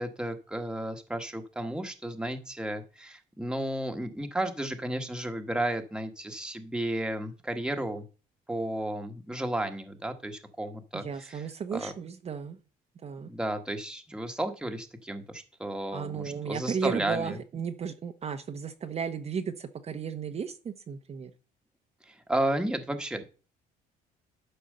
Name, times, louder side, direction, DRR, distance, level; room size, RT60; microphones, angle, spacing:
voice 1, 0.0-8.0 8.5-11.4 11.7-11.9 13.3-17.4 22.0-23.2, right 1 dB, 5° right, 6 dB, 1.5 m, -33 dB
voice 2, 10.9-12.6 13.0-13.3 15.9-21.3, right 6 dB, 40° right, 6 dB, 0.9 m, -34 dB
11.0 x 4.5 x 6.7 m, 0.34 s
cardioid pair, 110°, 17 cm